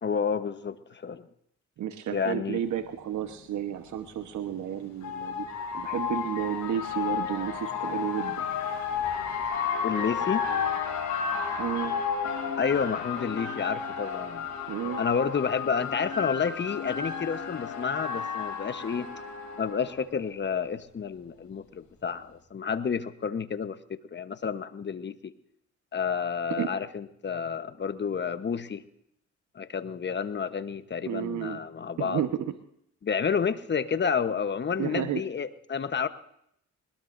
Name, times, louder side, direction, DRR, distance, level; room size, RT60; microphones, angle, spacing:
voice 1, 0.0-1.2 2.1-2.6 9.8-10.5 12.6-14.5 15.0-19.1 19.6-25.3 25.9-28.8 29.5-32.2 33.0-36.1, left 6 dB, 35° left, 11 dB, 1.1 m, -30 dB
voice 2, 1.8-5.5 5.7-8.4 11.6-11.9 14.7-15.0 26.6-26.7 31.1-31.6 32.0-32.5 34.8-35.2, right 10 dB, 70° right, 7 dB, 1.2 m, -32 dB
sound 1, 2.8-2.9 4.4-20.0, left 6 dB, 70° left, 7.4 m, -32 dB
21.5 x 20.5 x 2.7 m, 0.72 s
cardioid pair, 90°, 30 cm